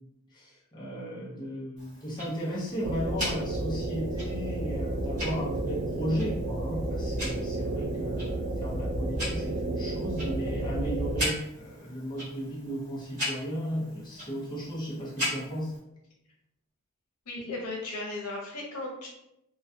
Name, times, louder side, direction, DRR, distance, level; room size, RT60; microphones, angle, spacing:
voice 1, 0.3-15.7, equal, 20° left, -6 dB, 0.6 m, -35 dB
Tick-tock, 1.8-15.8, left 1 dB, 35° right, 1.0 m, -40 dB
sound 1, 2.8-11.2, right 2 dB, 55° right, 0.4 m, -32 dB
voice 2, 17.3-19.1, left 2 dB, 90° left, -2 dB, 0.8 m, -36 dB
2.3 x 2.2 x 2.6 m, 0.83 s
head